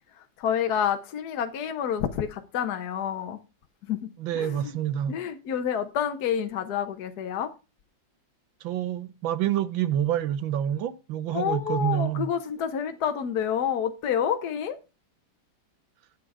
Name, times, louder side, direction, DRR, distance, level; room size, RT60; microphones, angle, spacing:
voice 1, 0.4-3.4 3.9-4.1 4.3-4.7 5.1-7.5 11.3-14.8, left 8 dB, 60° left, 1.4 m, -28 dB
voice 2, 4.2-5.2 8.6-12.3, right 11 dB, 85° right, 1.6 m, -27 dB
9.4 x 8.0 x 4.8 m
omnidirectional pair, 2.1 m